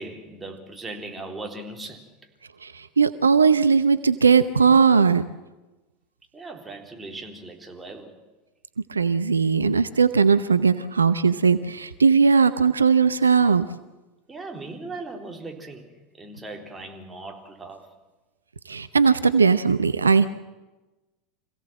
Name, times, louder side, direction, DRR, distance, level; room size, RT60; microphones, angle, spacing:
voice 1, 0.0-2.2 6.3-8.1 14.3-15.9 16.2-17.9, right 2 dB, 15° right, 2 dB, 3.8 m, -38 dB
voice 2, 2.6-5.2 8.9-13.7 18.7-20.3, right 5 dB, 85° right, 12 dB, 0.7 m, -19 dB
26.5 x 16.5 x 7.6 m, 1.1 s
figure-of-eight pair, 80°, 0 cm